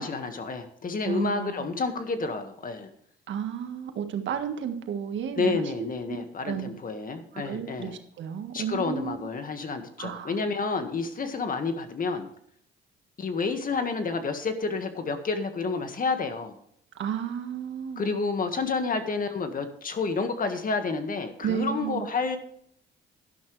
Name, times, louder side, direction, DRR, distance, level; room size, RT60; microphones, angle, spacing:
voice 1, 0.0-2.9 5.4-8.0 8.5-12.3 13.2-16.6 18.0-22.4, left 4 dB, 45° left, 8 dB, 1.8 m, -30 dB
voice 2, 1.0-1.7 3.3-6.7 7.3-9.3 10.0-10.3 16.9-18.0 21.4-22.1, right 8 dB, 70° right, 6 dB, 1.7 m, -33 dB
12.0 x 11.0 x 3.3 m, 0.70 s
cardioid pair, 90°, 20 cm